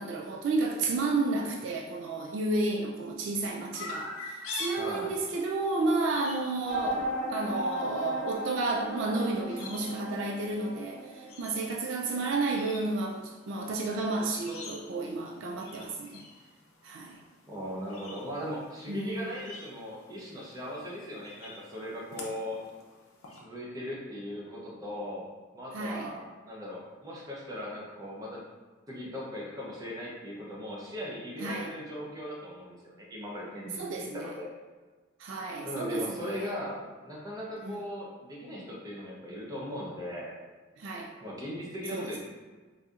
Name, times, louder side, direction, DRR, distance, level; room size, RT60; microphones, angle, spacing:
voice 1, 0.0-7.0 7.3-16.2 16.8-17.2 18.9-19.3 25.7-26.1 31.4-31.7 33.8-34.3 35.2-36.5 37.6-37.8 40.8-41.1 41.9-42.1, right 3 dB, 60° right, 0 dB, 0.3 m, -32 dB
Chirp tweet, 3.7-23.4, left 2 dB, 85° left, 0.6 m, -47 dB
voice 2, 4.7-5.1 17.5-22.6 23.4-25.2 25.5-28.4 28.9-34.5 35.6-40.3 41.2-42.2, equal, 20° right, -5 dB, 0.6 m, -39 dB
sound 1, 6.7-12.2, equal, 50° left, 0.8 m, -35 dB
4.1 x 2.5 x 2.4 m, 1.3 s
head